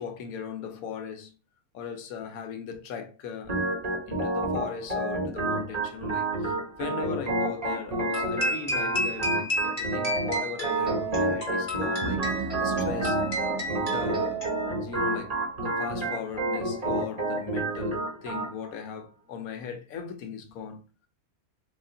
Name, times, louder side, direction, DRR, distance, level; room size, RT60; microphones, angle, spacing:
voice 1, 0.0-1.4 1.7-3.6 4.1-13.2 13.8-14.4 14.8-15.3 15.6-20.8, left 6 dB, 80° left, 1.1 m, -38 dB
Organ, 3.5-18.5, right 2 dB, 30° right, 0.9 m, -29 dB
sound 1, 8.1-15.0, equal, 25° left, 1.4 m, -32 dB
sound 2, 12.0-15.6, right 5 dB, 75° right, 1.2 m, -36 dB
3.5 x 2.4 x 3.8 m
omnidirectional pair, 1.5 m